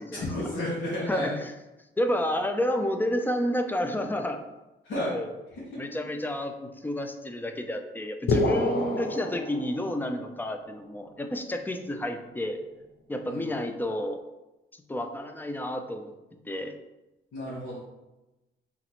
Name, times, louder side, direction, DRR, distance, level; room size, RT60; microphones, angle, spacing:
voice 1, 0.1-1.4 4.8-5.1 8.7-9.0 13.2-13.5 17.3-17.8, left 1 dB, 75° left, -9 dB, 1.5 m, -32 dB
voice 2, 2.0-4.4 5.0-5.3 5.8-12.6 13.1-14.2 14.9-16.1 16.5-16.7, left 1 dB, 10° left, 6 dB, 0.5 m, -30 dB
sound 1, 8.3-10.2, left 2 dB, 55° left, 0.7 m, -27 dB
5.8 x 3.0 x 3.0 m, 1.0 s
cardioid pair, 90°, 20 cm